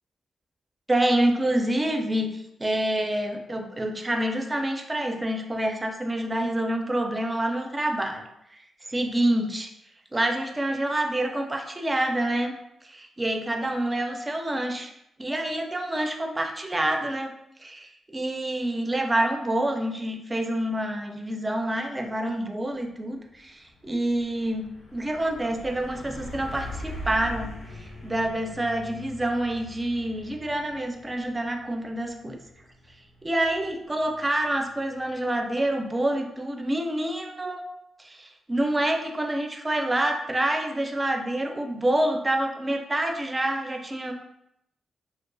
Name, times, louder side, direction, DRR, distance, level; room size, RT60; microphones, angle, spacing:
voice 1, 0.9-8.2 8.5-8.6 8.9-9.7 10.1-12.6 12.8-14.9 15.2-32.4 33.2-37.6 38.0-44.1, right 1 dB, 20° right, 4 dB, 0.4 m, -27 dB
Truck, 22.6-22.9 23.2-35.8, equal, 65° left, 0.7 m, -43 dB
2.4 x 2.4 x 2.3 m, 0.80 s
cardioid pair, 70°, 0 cm